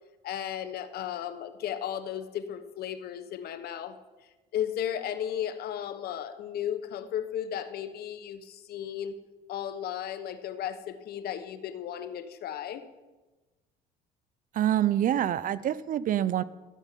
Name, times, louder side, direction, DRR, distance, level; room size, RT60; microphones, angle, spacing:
voice 1, 0.2-4.0 4.5-9.2 9.5-12.8, left 10 dB, 65° left, 11 dB, 1.1 m, -35 dB
voice 2, 14.5-16.4, right 11 dB, 55° right, 17 dB, 0.6 m, -26 dB
14.5 x 7.3 x 9.2 m, 1.2 s
cardioid pair, 110°, 17 cm